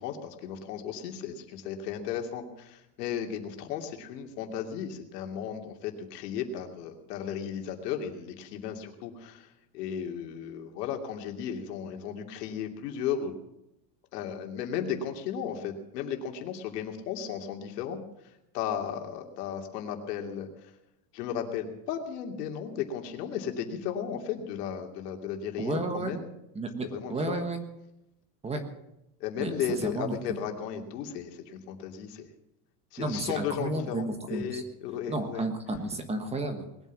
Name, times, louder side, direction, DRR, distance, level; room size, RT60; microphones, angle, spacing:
voice 1, 0.0-13.4 14.1-18.0 18.5-20.7 21.1-26.2 26.9-27.4 29.2-32.3 32.9-35.4, left 8 dB, 80° left, 4 dB, 2.9 m, -35 dB
voice 2, 25.6-26.1 26.5-27.6 28.4-28.6 29.4-29.5 29.8-30.4 33.0-34.6 35.1-36.6, right 2 dB, 15° right, 7 dB, 1.4 m, -32 dB
20.5 x 9.1 x 7.5 m, 0.86 s
supercardioid pair, 165°, 47 cm